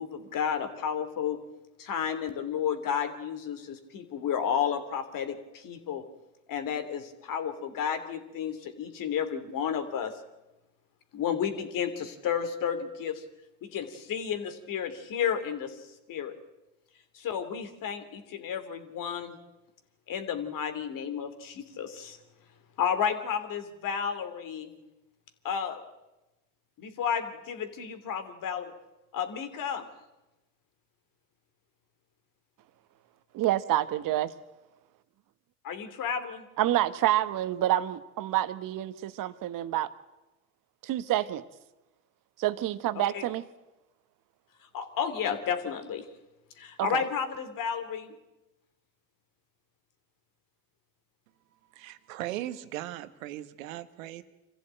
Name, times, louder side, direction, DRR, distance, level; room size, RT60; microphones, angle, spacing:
voice 1, 0.0-1.4 1.8-6.0 6.5-10.2 11.1-13.2 13.6-16.3 17.1-19.4 20.1-22.2 22.8-24.7 25.4-25.8 26.8-28.7 29.1-29.9 35.6-36.5 43.0-43.2 44.7-46.1 46.6-48.2, left 7 dB, 55° left, 9 dB, 3.0 m, -32 dB
voice 2, 33.3-34.3 36.6-39.9 40.8-41.4 42.4-43.4 46.8-47.0, right 13 dB, 55° right, 13 dB, 1.4 m, -28 dB
voice 3, 51.7-54.2, right 14 dB, 85° right, 12 dB, 1.3 m, -38 dB
25.0 x 15.0 x 9.0 m, 1.0 s
hypercardioid pair, 75°, 40 cm